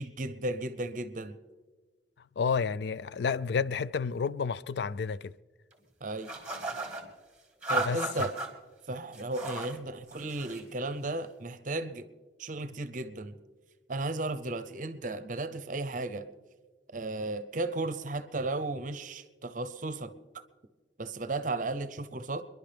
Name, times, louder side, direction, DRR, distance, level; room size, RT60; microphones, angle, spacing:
voice 1, 0.0-1.4 6.0-6.3 7.7-8.4 8.9-12.1 12.4-13.4 13.9-16.3 16.9-20.1 21.0-22.4, right 2 dB, 45° right, 0.7 m, -34 dB
voice 2, 2.4-5.3 7.9-8.0, left 5 dB, 65° left, 0.3 m, -30 dB
sound 1, 6.2-7.0 7.6-8.5 9.1-9.8 10.1-10.7, right 2 dB, 5° right, 1.7 m, -35 dB
28.5 x 11.0 x 3.4 m
head